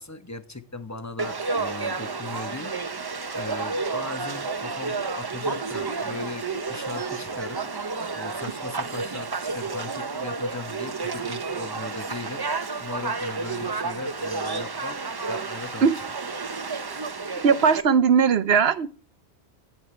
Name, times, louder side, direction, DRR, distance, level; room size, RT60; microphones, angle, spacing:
voice 1, 0.0-2.7 3.3-7.6 8.1-15.0 15.2-16.0, left 3 dB, 15° left, 0.9 m, -38 dB
Conversation / Crowd, 1.2-17.8, right 4 dB, 30° right, 0.5 m, -31 dB
voice 2, 17.4-18.9, right 6 dB, 65° right, 1.0 m, -19 dB
10.5 x 8.7 x 3.2 m
omnidirectional pair, 1.1 m